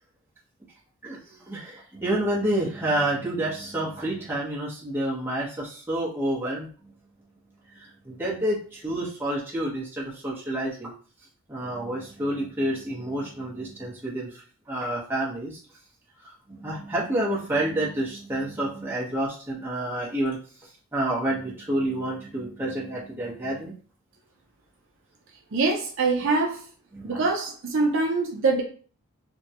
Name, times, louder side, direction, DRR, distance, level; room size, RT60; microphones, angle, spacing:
voice 1, 1.0-6.7 7.7-10.9 11.5-14.4 14.7-15.6 16.2-20.4 20.9-23.7 26.9-27.2, right 1 dB, 10° right, -6 dB, 0.9 m, -29 dB
voice 2, 25.5-26.6 27.0-28.6, right 3 dB, 55° right, 0 dB, 0.5 m, -24 dB
3.4 x 2.2 x 2.8 m, 0.41 s
head